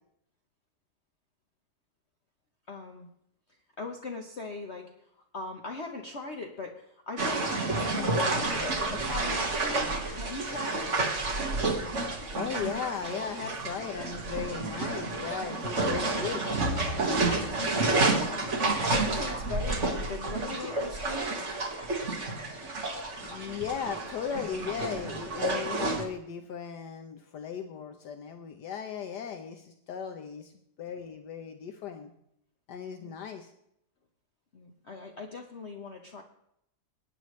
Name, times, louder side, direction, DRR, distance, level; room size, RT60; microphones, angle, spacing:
voice 1, 2.7-3.1 3.8-4.9 5.3-10.9 17.6-17.9 18.3-18.6 18.9-21.4 32.9-33.2 34.5-36.2, left 3 dB, 45° left, 3 dB, 1.1 m, -40 dB
sound 1, 7.2-26.0, right 2 dB, 45° right, 2.0 m, -30 dB
voice 2, 12.3-16.4 23.2-30.5 30.8-32.1 32.7-33.5, left 7 dB, 75° left, 5 dB, 1.4 m, -37 dB
20.0 x 9.9 x 3.2 m, 0.76 s
omnidirectional pair, 1.9 m